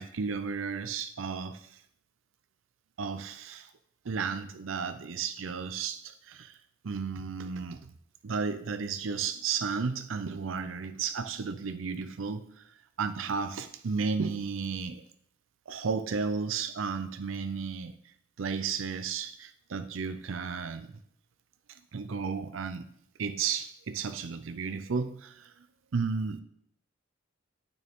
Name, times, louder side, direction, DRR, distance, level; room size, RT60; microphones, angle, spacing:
voice 1, 0.0-1.8 3.0-3.7 4.0-6.6 6.8-7.9 8.2-15.0 15.7-18.0 18.4-21.0 21.7-22.9 23.2-25.5 25.9-26.4, right 5 dB, 90° right, 0.5 m, -33 dB
9.1 x 6.4 x 3.6 m
head